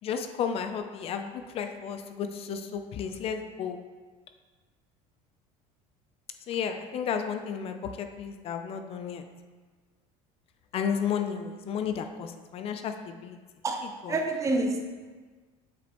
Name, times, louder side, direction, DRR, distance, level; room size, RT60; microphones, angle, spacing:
voice 1, 0.0-3.8 6.5-9.2 10.7-13.4 14.0-14.1, left 7 dB, 40° left, 7 dB, 0.4 m, -33 dB
voice 2, 13.6-14.9, right 2 dB, 20° right, 3 dB, 0.7 m, -28 dB
8.2 x 5.0 x 3.0 m, 1.4 s
cardioid pair, 140°, 15 cm